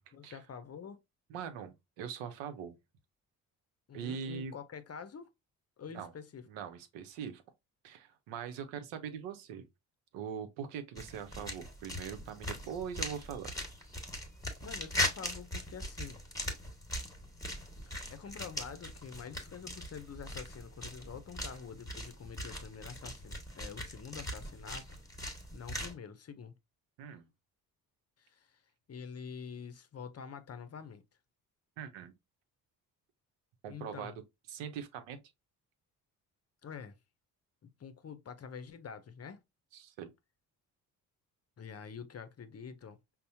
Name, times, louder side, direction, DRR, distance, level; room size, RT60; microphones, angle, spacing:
voice 1, 0.1-1.0 3.9-5.3 5.8-6.5 14.6-16.2 17.5-17.6 18.1-24.9 25.5-26.5 28.2-28.6 28.9-31.0 33.7-34.2 36.6-37.0 37.6-39.4 41.6-43.0, left 6 dB, 35° left, 0.6 m, -46 dB
voice 2, 1.3-2.7 3.9-4.5 5.9-6.1 6.5-7.4 7.8-9.7 10.1-13.5 27.0-27.3 31.8-32.1 33.6-34.1 34.5-35.2 39.7-40.1, right 7 dB, 75° right, 0.7 m, -42 dB
sound 1, 11.0-25.9, left 1 dB, 10° left, 1.5 m, -40 dB
5.4 x 2.1 x 2.7 m
hypercardioid pair, 45°, 45 cm